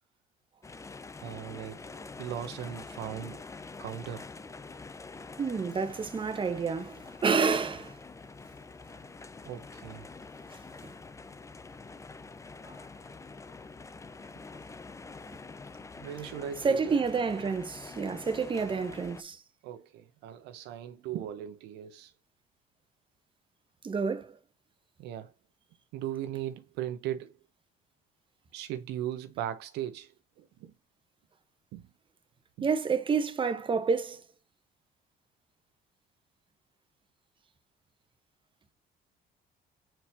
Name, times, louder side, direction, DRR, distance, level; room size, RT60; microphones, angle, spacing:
sound 1, 0.6-19.2, left 4 dB, 15° left, 0.7 m, -46 dB
voice 1, 1.2-3.4 3.8-4.3 9.4-10.1 15.9-16.9 19.6-22.1 25.0-25.3 25.9-27.4 28.5-30.7 31.7-31.9 32.6-32.7, right 11 dB, 90° right, 0.9 m, -38 dB
voice 2, 5.4-7.9 10.8-10.9 12.7-12.8 16.6-19.4 23.8-24.4 32.6-34.2, right 5 dB, 30° right, 1.3 m, -29 dB
7.7 x 4.5 x 2.7 m
cardioid pair, 110°, 17 cm